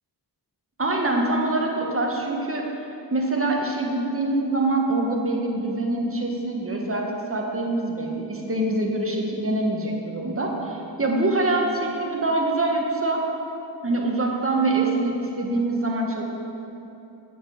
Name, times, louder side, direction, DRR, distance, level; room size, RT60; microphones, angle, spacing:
voice 1, 0.8-2.7 3.1-13.2 13.8-16.2, right 2 dB, 30° right, 0 dB, 1.6 m, -24 dB
8.6 x 7.7 x 5.0 m, 3.0 s
cardioid pair, 45°, 42 cm